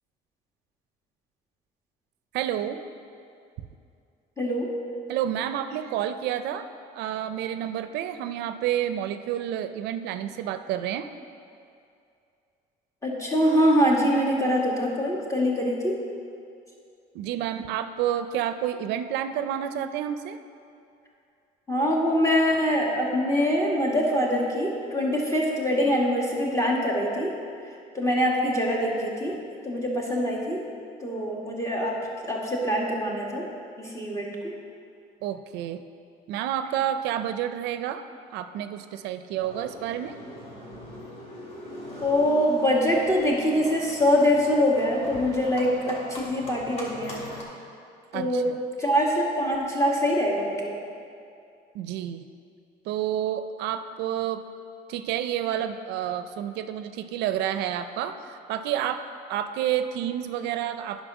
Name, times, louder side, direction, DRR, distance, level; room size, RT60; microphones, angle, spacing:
voice 1, 2.3-2.8 5.1-6.7 6.9-11.1 17.1-20.4 35.2-35.8 36.3-38.0 38.3-40.1 48.1-48.6 51.7-52.3 52.9-54.4 54.9-59.0 59.3-61.0, right 10 dB, 85° right, 10 dB, 0.5 m, -29 dB
voice 2, 4.4-4.7 13.0-16.0 21.7-27.3 27.9-29.3 29.6-30.6 31.0-33.5 33.8-34.5 42.0-47.2 48.1-48.5 48.8-50.8, equal, 15° left, -3 dB, 1.8 m, -24 dB
Livestock farm animals working animals, 39.4-47.4, left 1 dB, 40° left, 2.6 m, -41 dB
10.0 x 5.2 x 6.2 m, 2.5 s
cardioid pair, 110°, 17 cm